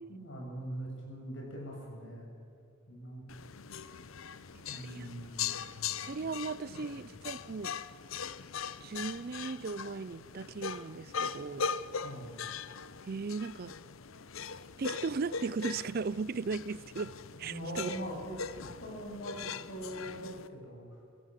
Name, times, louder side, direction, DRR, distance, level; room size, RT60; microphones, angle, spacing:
voice 1, 0.1-2.3 2.9-3.2 4.7-5.9 6.7-7.0 12.0-12.4 17.4-20.9, equal, 65° left, 7.3 m, -42 dB
sound 1, 3.3-20.5, left 6 dB, 80° left, 0.8 m, -40 dB
voice 2, 4.7-5.1 6.0-7.8 8.8-11.7 13.1-13.8 14.8-17.9, right 4 dB, 45° right, 0.4 m, -37 dB
24.0 x 16.0 x 7.6 m
head